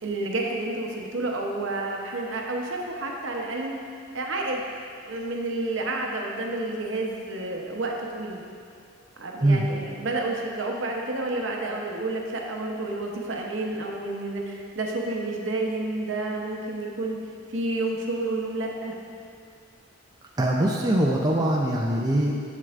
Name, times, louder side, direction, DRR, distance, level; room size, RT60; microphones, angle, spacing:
voice 1, 0.0-3.7 4.1-4.6 5.1-8.4 9.2-17.2 17.5-19.0, right 2 dB, 65° right, 0 dB, 0.8 m, -30 dB
voice 2, 20.4-22.3, right 1 dB, 20° right, -2 dB, 0.4 m, -22 dB
7.6 x 7.4 x 2.5 m, 2.4 s
head